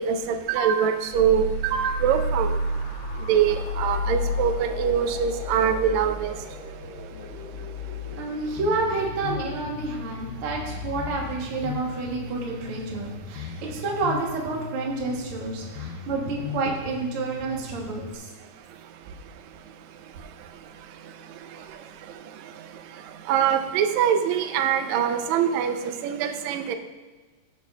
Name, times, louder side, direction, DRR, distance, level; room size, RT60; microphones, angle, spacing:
voice 1, 0.0-2.5 3.3-6.3 23.3-25.7 26.0-26.8, right 8 dB, 85° right, 7 dB, 1.6 m, -23 dB
sound 1, 1.1-12.5, left 1 dB, 50° left, 2.3 m, -32 dB
voice 2, 8.2-18.2, right 3 dB, 60° right, -2 dB, 1.6 m, -29 dB
Bass guitar, 8.6-18.2, left 5 dB, 85° left, 2.3 m, -38 dB
16.5 x 6.0 x 2.3 m, 1.3 s
omnidirectional pair, 3.8 m